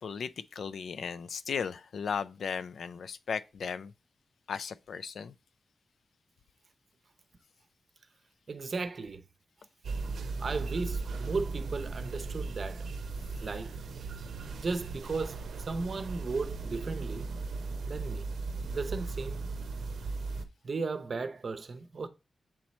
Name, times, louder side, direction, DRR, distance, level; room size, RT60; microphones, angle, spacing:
voice 1, 0.0-3.9 4.5-5.3, left 6 dB, 75° left, 0.3 m, -36 dB
voice 2, 8.5-9.2 10.4-12.9 13.4-13.8 14.6-17.3 17.9-18.3 18.7-19.5 20.6-22.1, right 4 dB, 50° right, 0.7 m, -35 dB
sound 1, 9.8-20.5, right 3 dB, 85° right, 0.6 m, -37 dB
7.5 x 3.0 x 4.2 m
wide cardioid pair, 100°, 0 cm